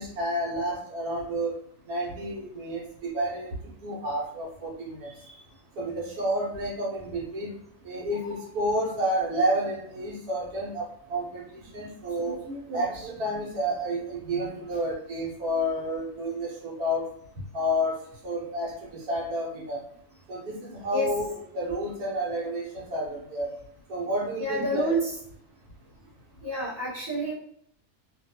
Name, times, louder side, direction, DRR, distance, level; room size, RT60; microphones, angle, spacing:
voice 1, 0.0-1.5 1.9-3.5 3.8-5.1 5.8-7.5 7.8-10.8 11.1-11.4 11.7-17.0 17.5-18.0 18.2-19.8 20.3-23.5 23.9-25.0, equal, 75° right, -2 dB, 1.2 m, -30 dB
voice 2, 24.4-25.1 26.4-27.3, right 1 dB, 10° right, -9 dB, 1.0 m, -28 dB
2.8 x 2.2 x 2.8 m, 0.66 s
omnidirectional pair, 1.6 m